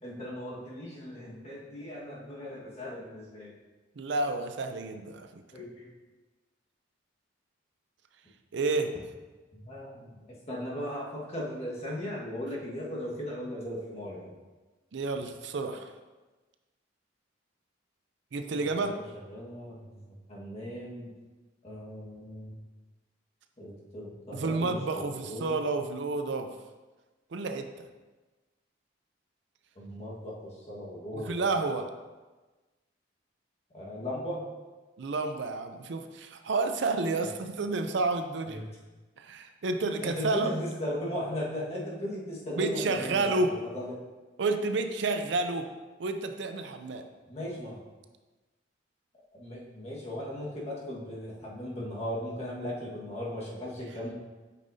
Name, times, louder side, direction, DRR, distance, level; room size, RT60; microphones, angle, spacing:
voice 1, 0.0-3.5 5.5-5.9 9.5-14.3 18.9-20.0 20.3-21.1 21.6-22.6 23.6-25.6 29.7-31.5 33.7-34.4 38.5-38.7 40.0-44.0 47.3-47.8 49.3-54.1, left 1 dB, 35° left, -4 dB, 1.5 m, -37 dB
voice 2, 4.0-5.4 8.5-9.0 14.9-15.9 18.3-19.0 24.3-26.5 27.3-27.9 31.1-31.9 35.0-38.6 39.2-40.5 42.6-43.6 44.4-45.7 46.0-47.1, right 3 dB, 65° right, 7 dB, 0.5 m, -30 dB
8.2 x 5.4 x 2.7 m, 1.2 s
head